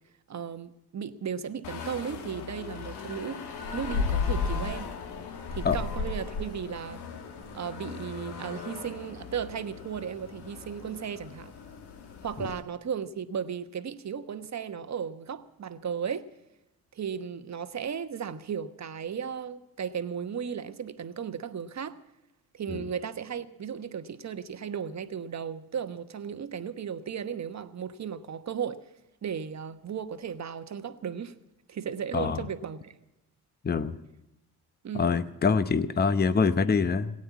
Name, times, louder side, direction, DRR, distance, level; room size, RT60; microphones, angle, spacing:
voice 1, 0.3-3.4 3.7-4.9 5.5-7.0 7.5-11.6 12.2-16.3 16.9-22.0 22.5-28.8 29.2-31.4 31.7-33.0 34.8-35.1, right 7 dB, 40° right, 1.1 m, -35 dB
sound 1, 1.6-12.6, left 5 dB, 65° left, 1.5 m, -35 dB
voice 2, 33.6-34.0 34.9-37.2, left 5 dB, 25° left, 0.8 m, -25 dB
17.0 x 8.8 x 8.4 m
supercardioid pair, 55°, 42 cm